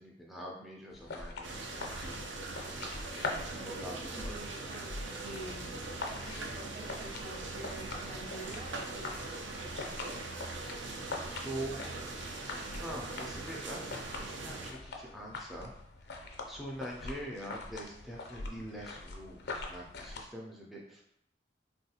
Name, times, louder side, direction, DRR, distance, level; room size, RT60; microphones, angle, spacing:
voice 1, 0.0-2.2 3.1-4.4 11.3-11.8 12.8-15.7 16.5-21.0, right 1 dB, ahead, -3 dB, 0.3 m, -44 dB
sound 1, 0.9-20.2, left 3 dB, 60° left, 0.4 m, -44 dB
sound 2, 1.4-14.7, right 2 dB, 75° right, 0.5 m, -41 dB
voice 2, 3.5-5.7 6.1-9.2 9.5-10.3, right 1 dB, 30° right, -2 dB, 0.7 m, -48 dB
3.5 x 2.3 x 2.8 m, 0.76 s
head